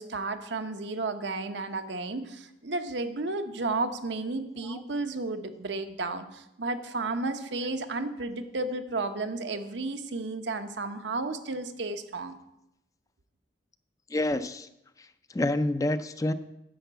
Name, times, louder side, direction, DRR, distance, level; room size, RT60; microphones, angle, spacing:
voice 1, 0.0-12.4, right 3 dB, 75° right, 8 dB, 0.9 m, -33 dB
voice 2, 14.1-14.7 15.0-16.3, left 1 dB, 20° left, 11 dB, 0.4 m, -28 dB
10.0 x 5.1 x 8.0 m, 0.86 s
head